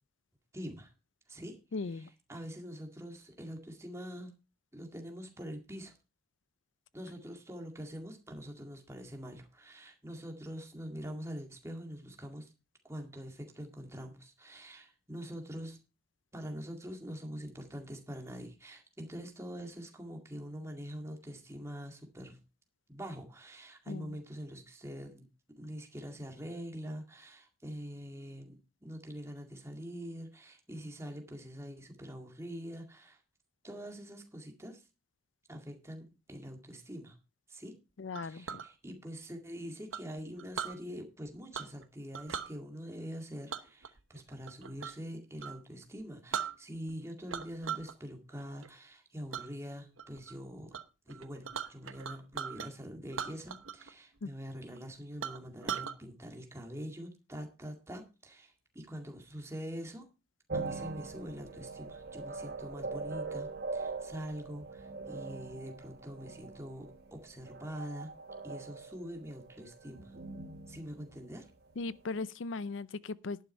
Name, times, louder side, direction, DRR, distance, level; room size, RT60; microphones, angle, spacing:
voice 1, 0.5-0.9 1.3-1.6 1.8-4.3 4.7-5.9 6.9-12.5 12.8-15.8 16.3-22.4 22.9-25.3 25.6-33.2 33.6-34.8 35.5-37.2 37.5-37.8 38.2-50.7 51.1-60.1 60.5-68.1 68.4-70.1 70.7-71.5, equal, 15° right, 2.0 m, -44 dB
voice 2, 1.7-2.1 23.9-24.2 38.0-38.6 54.2-54.3 71.8-73.4, left 3 dB, 70° left, 0.5 m, -38 dB
Chink clink, 38.1-38.7 39.9-40.8 41.5-41.8 42.1-42.5 43.5-45.0 45.4-45.6 46.0-46.1 46.3-46.9 47.3-47.9 48.3-48.7 49.3-49.5 50.0-50.3 50.7-50.8 51.1-52.7 53.1-53.9 54.2-54.3 54.7-54.8 55.2-55.9, right 7 dB, 80° right, 1.0 m, -39 dB
sound 1, 60.5-71.9, right 3 dB, 50° right, 1.3 m, -42 dB
11.0 x 9.4 x 4.4 m
head